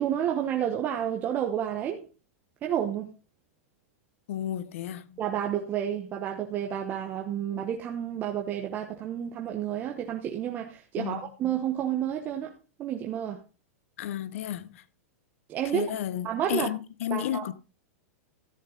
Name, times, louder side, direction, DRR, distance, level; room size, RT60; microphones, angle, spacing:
voice 1, 0.0-2.1 2.6-3.1 5.2-12.5 12.8-13.4 15.5-15.9 16.2-16.7 17.1-17.5, right 10 dB, 25° right, 1.0 m, -30 dB
voice 2, 4.3-5.2 11.0-11.3 14.0-14.8 15.7-17.5, left 11 dB, 65° left, 0.9 m, -32 dB
13.5 x 7.5 x 3.9 m
supercardioid pair, 160°, 8 cm